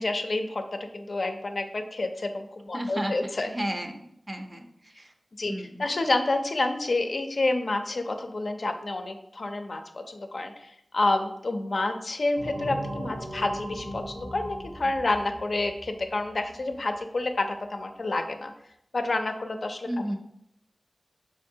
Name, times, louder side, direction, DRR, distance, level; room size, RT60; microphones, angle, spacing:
voice 1, 0.0-3.5 5.4-5.5 5.8-9.8 10.1-18.5 18.9-19.9, left 2 dB, 70° left, 5 dB, 0.4 m, -29 dB
voice 2, 2.7-3.1 3.4-4.7 5.0-5.1 5.5-5.8 19.9-20.2, equal, 30° right, 4 dB, 0.5 m, -32 dB
sound 1, 12.4-16.8, equal, 80° right, 1.6 m, -38 dB
4.3 x 3.6 x 2.7 m, 0.77 s
wide cardioid pair, 70°, 0 cm